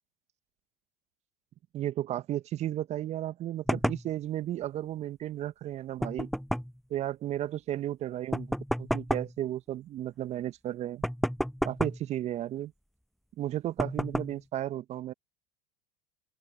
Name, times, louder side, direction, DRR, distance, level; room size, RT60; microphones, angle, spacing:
voice 1, 1.7-6.3 6.9-11.0 11.6-12.7 13.4-15.1, right 12 dB, 40° right, 1.5 m, -34 dB
sound 1, 3.7-4.1 6.0-6.8 8.3-9.3 11.0-12.1 13.8-14.4, equal, ahead, 7.3 m, -31 dB
open air
figure-of-eight pair, 75°, 17 cm